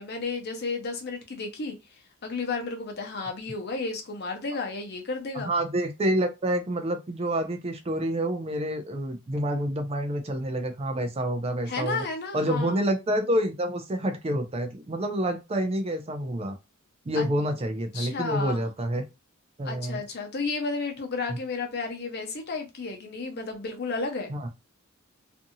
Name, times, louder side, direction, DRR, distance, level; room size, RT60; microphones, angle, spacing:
voice 1, 0.0-1.8 2.2-5.5 11.7-12.8 17.2-17.3 17.9-18.6 19.6-24.3, left 4 dB, 50° left, 0.8 m, -32 dB
voice 2, 5.5-12.0 12.3-16.6 17.1-19.0 19.6-20.0 24.3-24.5, right 1 dB, 30° right, 0.4 m, -28 dB
2.6 x 2.5 x 2.7 m
head